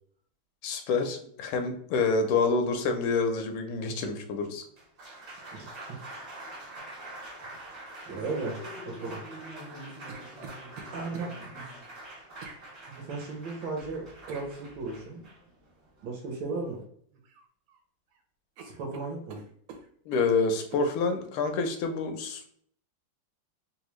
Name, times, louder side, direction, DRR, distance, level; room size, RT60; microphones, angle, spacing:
voice 1, 0.6-4.6 20.1-22.5, left 4 dB, 85° left, 6 dB, 1.5 m, -27 dB
Applause, 4.6-16.8, right 1 dB, 35° right, 1.0 m, -44 dB
voice 2, 8.1-9.2 10.9-11.3 11.5-11.6 13.0-15.2 16.0-16.8 18.6-19.4, right 3 dB, 65° right, 0 dB, 1.4 m, -36 dB
sound 1, 9.6-11.3 12.4-12.6 14.3-14.5 16.5-16.8 17.1-17.8 18.1-18.2 18.6-20.3 20.7-20.9, right 4 dB, 80° right, 1.5 m, -47 dB
3.9 x 2.3 x 3.0 m, 0.64 s
omnidirectional pair, 2.4 m